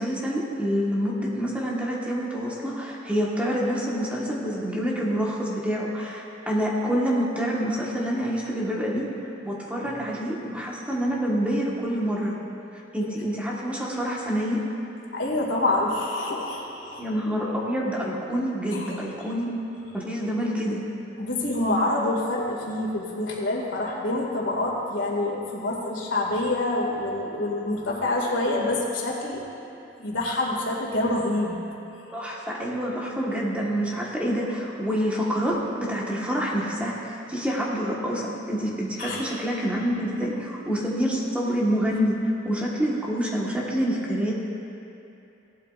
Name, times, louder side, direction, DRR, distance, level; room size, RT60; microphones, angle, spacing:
voice 1, 0.0-9.1 9.4-12.4 12.9-14.6 17.0-19.6 19.9-20.8 32.1-42.2 42.4-44.3, equal, 5° right, -4 dB, 1.4 m, -27 dB
voice 2, 15.1-17.0 18.7-19.0 21.2-29.4 30.0-31.6 32.1-32.3 39.0-39.2 40.0-40.3, left 2 dB, 85° left, -2 dB, 2.2 m, -27 dB
17.5 x 12.0 x 2.5 m, 2.7 s
head